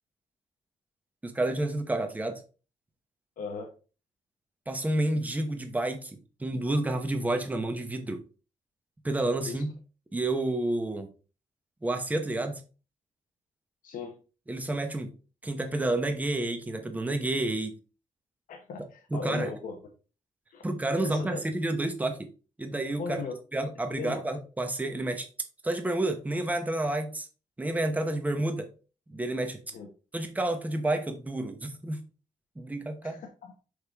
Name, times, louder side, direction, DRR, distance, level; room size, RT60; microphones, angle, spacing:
voice 1, 1.2-2.4 4.7-8.2 9.0-9.8 10.1-11.1 11.8-12.6 14.5-15.1 15.4-17.8 19.1-19.5 20.6-22.3 22.6-23.2 23.5-25.3 25.6-27.3 27.6-28.7 29.1-29.6 30.1-32.0 32.6-33.2, right 2 dB, 10° right, 0.9 m, -30 dB
voice 2, 3.4-3.7 9.5-9.6 13.8-14.2 18.5-19.8 20.5-20.6 21.0-21.4 23.0-23.3 23.9-24.2 29.7-29.9 33.0-33.6, left 4 dB, 85° left, 1.0 m, -37 dB
6.4 x 5.0 x 3.5 m
wide cardioid pair, 175°, 14 cm